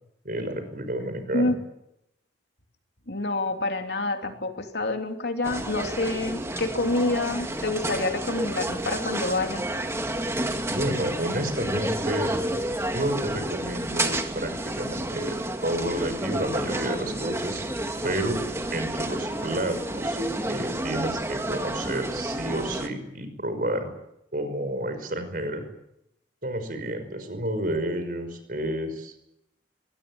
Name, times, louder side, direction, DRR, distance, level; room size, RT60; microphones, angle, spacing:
voice 1, 0.2-1.5 10.7-12.3 12.9-15.4 15.6-18.4 18.7-20.2 20.5-23.9 24.3-25.7 26.4-29.1, right 1 dB, 50° right, 9 dB, 5.4 m, -30 dB
voice 2, 3.1-9.6, left 2 dB, 65° left, 5 dB, 3.0 m, -27 dB
sound 1, 5.4-22.9, right 1 dB, 15° right, 2.1 m, -30 dB
23.5 x 20.0 x 9.7 m, 0.83 s
head